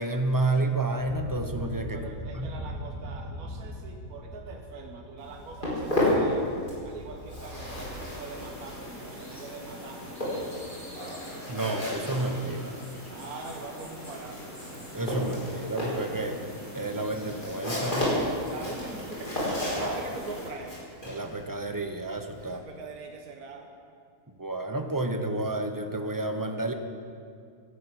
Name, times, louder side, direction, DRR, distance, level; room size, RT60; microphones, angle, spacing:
voice 1, 0.0-2.0 2.4-2.5 11.5-12.8 14.9-16.4 16.7-18.1 19.8-20.0 21.1-22.6 24.4-26.7, right 2 dB, 15° right, 5 dB, 0.7 m, -30 dB
sound 1, 1.0-7.9, equal, 80° left, 3.1 m, -41 dB
voice 2, 1.9-6.5 6.8-10.7 13.1-14.6 18.5-20.8 22.4-23.7, right 4 dB, 70° right, 2 dB, 1.6 m, -43 dB
Walk footsteps, 5.2-6.9 7.2-22.6, left 1 dB, 30° left, 4.3 m, -32 dB
sound 2, 7.6-20.5, left 1 dB, 10° left, 3.5 m, -43 dB
12.0 x 12.0 x 8.2 m, 2.3 s
omnidirectional pair, 1.6 m